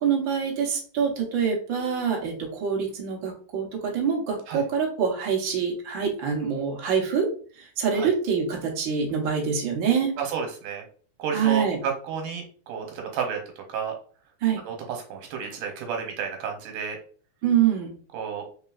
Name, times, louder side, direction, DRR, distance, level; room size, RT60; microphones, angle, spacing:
voice 1, 0.0-7.3 7.8-10.1 11.3-11.8 14.4-14.6 17.4-17.9, right 7 dB, 55° right, 0 dB, 1.3 m, -25 dB
voice 2, 10.2-10.8 11.2-13.9 14.6-17.0 18.1-18.5, right 7 dB, 85° right, 3 dB, 2.5 m, -31 dB
4.1 x 3.9 x 2.4 m, 0.42 s
omnidirectional pair, 3.6 m